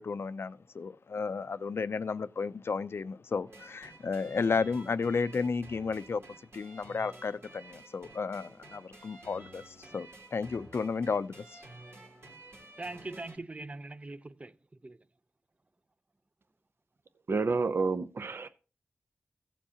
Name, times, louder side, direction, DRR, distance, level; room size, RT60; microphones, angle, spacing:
voice 1, 0.0-6.2 6.5-11.6, left 5 dB, 65° left, 0.5 m, -33 dB
sound 1, 3.5-13.4, right 2 dB, 80° right, 2.8 m, -52 dB
voice 2, 12.8-15.0, right 2 dB, 30° right, 0.6 m, -42 dB
voice 3, 17.3-18.5, right 4 dB, 65° right, 0.7 m, -29 dB
16.5 x 7.3 x 2.8 m
wide cardioid pair, 70°, 4 cm